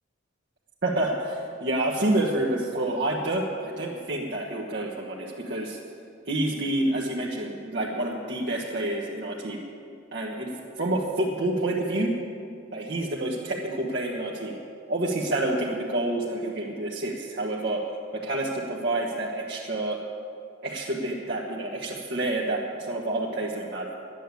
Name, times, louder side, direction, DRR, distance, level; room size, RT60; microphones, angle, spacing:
voice 1, 0.8-5.8 6.2-9.6 10.1-12.1 12.7-14.6 14.9-17.8 18.1-20.0 20.6-23.9, right 1 dB, 55° right, -4 dB, 1.4 m, -28 dB
12.5 x 10.0 x 8.4 m, 2.4 s
head